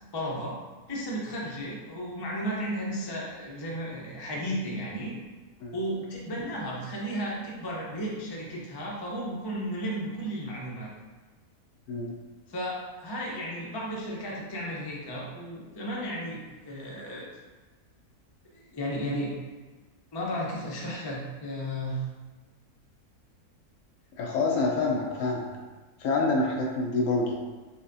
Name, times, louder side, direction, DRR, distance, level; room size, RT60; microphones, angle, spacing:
voice 1, 0.1-0.6 0.9-5.2 5.7-10.9 12.5-17.2 18.5-19.3 20.1-22.0, equal, 35° left, -4 dB, 0.4 m, -34 dB
voice 2, 24.2-25.5 26.0-27.4, left 3 dB, 65° left, -1 dB, 0.9 m, -27 dB
4.1 x 3.3 x 2.6 m, 1.3 s
omnidirectional pair, 1.6 m